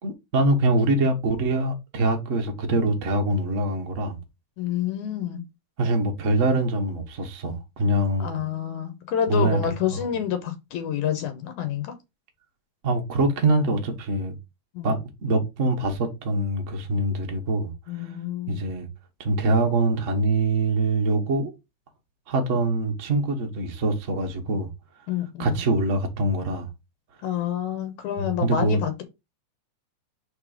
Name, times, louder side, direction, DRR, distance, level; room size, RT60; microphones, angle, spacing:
voice 1, 0.0-4.2 5.8-8.3 9.3-10.0 12.8-14.3 14.8-17.7 18.5-18.9 19.2-21.5 22.3-24.7 25.4-26.7 28.2-28.8, right 2 dB, 65° right, 0.7 m, -24 dB
voice 2, 4.6-5.4 8.2-11.9 14.7-14.9 17.9-18.6 25.1-25.6 27.2-29.0, left 9 dB, 75° left, 2.3 m, -28 dB
5.0 x 4.3 x 5.0 m
omnidirectional pair, 3.7 m